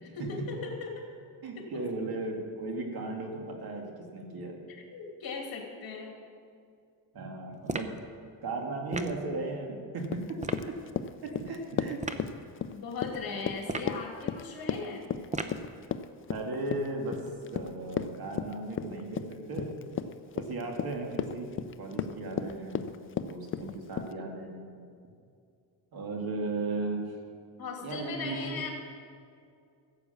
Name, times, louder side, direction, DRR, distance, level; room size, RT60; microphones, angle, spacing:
voice 1, 0.0-1.1 1.6-1.8 4.7-6.1 12.7-15.2 27.6-28.7, left 4 dB, 55° left, 1 dB, 2.8 m, -38 dB
voice 2, 1.4-4.6 7.1-8.0 8.4-10.2 10.7-10.8 11.2-12.0 16.3-19.7 20.4-21.5 21.8-22.8 23.2-24.6 25.9-27.0 27.8-28.7, right 2 dB, 55° right, 1 dB, 2.4 m, -36 dB
sound 1, 7.7-8.0 8.9-9.2 10.4-10.7 12.0-12.3 13.6-14.0 15.3-15.7, right 3 dB, 15° right, 0.6 m, -35 dB
Run, 10.0-24.1, left 7 dB, 30° left, 0.4 m, -35 dB
14.5 x 8.2 x 7.0 m, 2.4 s
cardioid pair, 135°, 44 cm